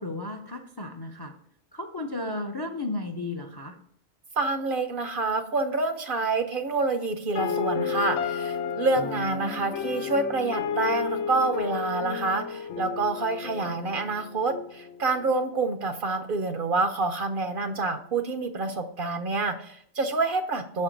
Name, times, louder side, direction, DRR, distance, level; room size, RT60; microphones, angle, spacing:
voice 1, 0.0-1.3 1.7-3.8, left 2 dB, 30° left, 5 dB, 0.4 m, -34 dB
voice 2, 4.4-20.8, right 3 dB, 55° right, 8 dB, 0.7 m, -27 dB
sound 1, 7.4-15.4, left 6 dB, 85° left, 1.0 m, -32 dB
6.5 x 4.4 x 5.0 m, 0.67 s
omnidirectional pair, 1.2 m